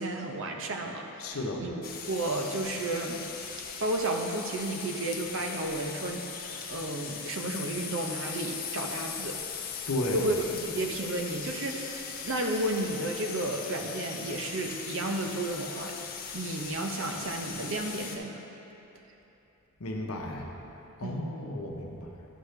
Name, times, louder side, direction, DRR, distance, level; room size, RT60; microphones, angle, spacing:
voice 1, 0.0-3.2 3.8-6.3 6.7-9.4 10.1-16.0 16.3-18.4 21.0-21.5, right 1 dB, 60° right, 2 dB, 0.7 m, -32 dB
voice 2, 1.2-1.7 9.9-10.2 19.8-20.5 21.0-22.1, left 1 dB, 70° left, 1 dB, 0.8 m, -33 dB
potatoes frying in pan, 1.8-18.2, left 6 dB, 40° left, 0.7 m, -39 dB
11.0 x 6.4 x 3.3 m, 3.0 s
head